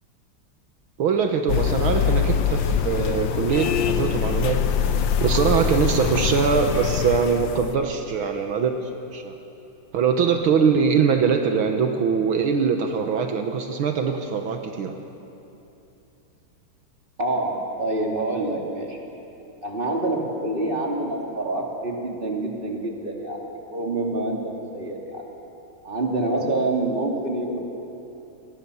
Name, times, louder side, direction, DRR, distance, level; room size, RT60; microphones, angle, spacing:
voice 1, 1.0-4.6 5.2-8.7 9.1-9.3 9.9-14.9, right 6 dB, 75° right, 5 dB, 2.1 m, -22 dB
sound 1, 1.5-7.7, left 8 dB, 70° left, 1.6 m, -23 dB
voice 2, 17.2-19.0 19.6-25.2 25.8-27.6, right 2 dB, 25° right, 0 dB, 3.2 m, -27 dB
28.5 x 21.5 x 7.1 m, 2.9 s
omnidirectional pair, 2.3 m